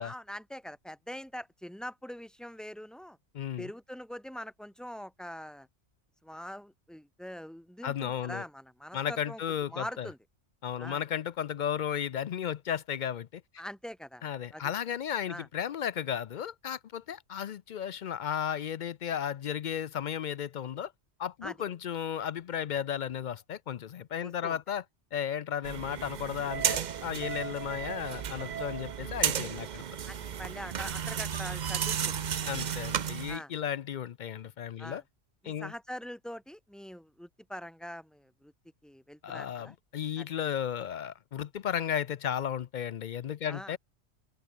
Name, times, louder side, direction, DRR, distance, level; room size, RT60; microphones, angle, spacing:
voice 1, 0.0-3.2 3.6-5.7 6.2-9.4 9.7-10.2 10.8-11.0 13.6-14.2 14.5-14.7 15.3-15.5 21.4-21.6 24.2-24.6 30.1-32.1 32.4-32.6 33.3-33.5 34.8-35.0 35.4-38.5 38.8-39.8 40.2-40.3 43.4-43.7, equal, ahead, 4.1 m, -43 dB
voice 2, 3.3-3.7 7.8-8.4 8.9-10.1 10.6-13.4 14.2-20.9 21.2-24.8 25.1-29.8 32.5-35.0 35.4-35.7 39.2-43.8, left 9 dB, 60° left, 0.5 m, -34 dB
sound 1, 25.6-33.4, right 8 dB, 45° right, 0.7 m, -33 dB
omnidirectional pair, 1.2 m